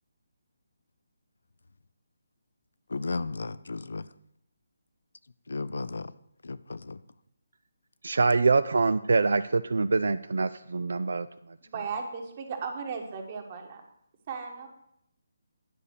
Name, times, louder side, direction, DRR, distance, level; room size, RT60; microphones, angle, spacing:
voice 1, 2.9-4.0 5.5-6.1 6.4-7.0, left 3 dB, 70° left, 16 dB, 0.4 m, -34 dB
voice 2, 8.0-11.3, right 3 dB, 70° right, 13 dB, 0.4 m, -24 dB
voice 3, 11.6-13.8 14.3-14.7, right 5 dB, 35° right, 3 dB, 1.6 m, -36 dB
9.8 x 5.3 x 6.6 m, 0.75 s
figure-of-eight pair, 150°, 0 cm